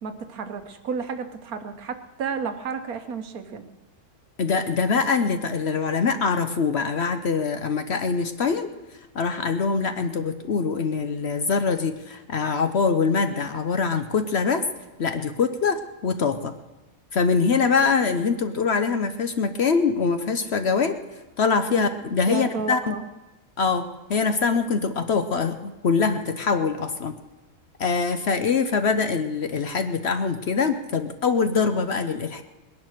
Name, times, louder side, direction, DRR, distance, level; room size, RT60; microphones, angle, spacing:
voice 1, 0.0-3.6 21.7-22.0 22.3-23.0, right 5 dB, 75° right, 9 dB, 1.5 m, -32 dB
voice 2, 4.4-8.7 9.1-14.7 15.0-16.5 17.1-21.0 21.4-22.9 23.6-27.1 27.8-32.4, left 5 dB, 55° left, 9 dB, 0.8 m, -23 dB
20.0 x 10.5 x 6.4 m, 1.1 s
omnidirectional pair, 1.6 m